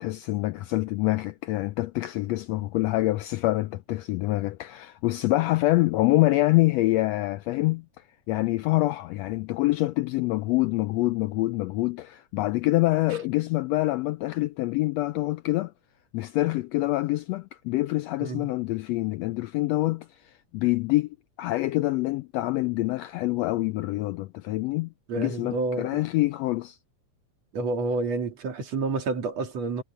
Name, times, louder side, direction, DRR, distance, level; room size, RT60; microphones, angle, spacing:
voice 1, 0.0-7.8 8.3-15.7 16.1-21.1 21.4-26.8, left 18 dB, 80° left, 1.5 m, -26 dB
voice 2, 18.2-18.5 25.1-26.0 27.5-29.8, right 3 dB, 60° right, 3.4 m, -29 dB
omnidirectional pair, 3.4 m